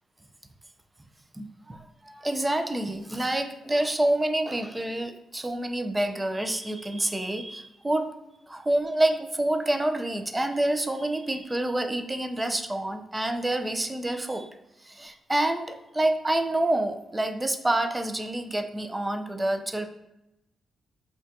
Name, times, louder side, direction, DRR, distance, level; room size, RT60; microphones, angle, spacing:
voice 1, 1.3-8.1 8.5-14.5 14.8-19.9, right 1 dB, 15° right, 7 dB, 0.3 m, -27 dB
3.9 x 2.2 x 2.5 m, 0.90 s
cardioid pair, 75°, 0 cm